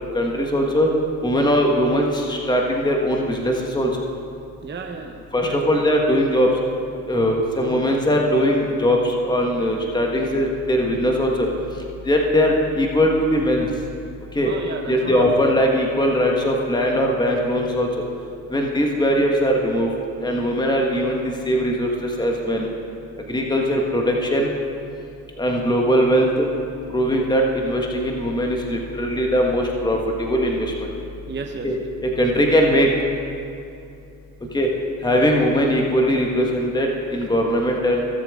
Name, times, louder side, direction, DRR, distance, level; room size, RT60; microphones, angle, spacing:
voice 1, 0.1-0.9 1.2-3.9 5.3-6.5 7.0-11.5 12.0-13.7 14.3-14.5 14.9-17.9 18.5-19.9 20.2-22.7 23.3-24.5 25.4-26.5 26.9-30.9 31.6-31.7 32.0-32.9 34.5-34.7 35.0-38.1, equal, 10° left, 0 dB, 1.6 m, -20 dB
voice 2, 4.6-5.2 5.5-5.6 14.4-15.3 31.3-31.7, right 4 dB, 25° right, 3 dB, 0.9 m, -33 dB
18.5 x 7.5 x 3.8 m, 2.6 s
supercardioid pair, 70°, 40 cm